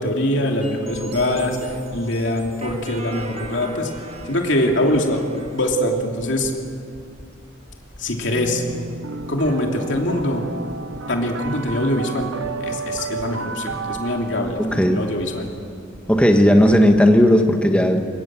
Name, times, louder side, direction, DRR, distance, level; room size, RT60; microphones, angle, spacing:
voice 1, 0.0-3.9 4.2-5.2 5.5-6.5 8.0-8.6 9.3-10.4 11.1-12.3 12.6-15.5, left 1 dB, 60° left, 1 dB, 3.0 m, -23 dB
sound 1, 0.6-5.6, right 2 dB, 30° right, 1.5 m, -37 dB
sound 2, 0.9-1.3 1.7-2.0 2.4-2.8 3.2-3.5 3.9-4.3 4.7-5.0 5.4-5.8 6.2-6.5 6.9-7.3 7.7-8.0 8.4-8.8 9.2-9.5 9.9-10.3 10.7-11.0 11.4-11.8 12.2-12.5 12.9-13.3 13.7-14.0 14.4-14.8 15.2-15.5 15.9-16.3 16.7-17.0, equal, 20° left, 3.5 m, -43 dB
sound 3, 8.3-15.4, right 4 dB, 80° right, 1.0 m, -32 dB
voice 2, 14.6-15.0 16.1-18.0, equal, 5° left, 4 dB, 1.6 m, -15 dB
24.0 x 21.0 x 7.7 m, 2.4 s
head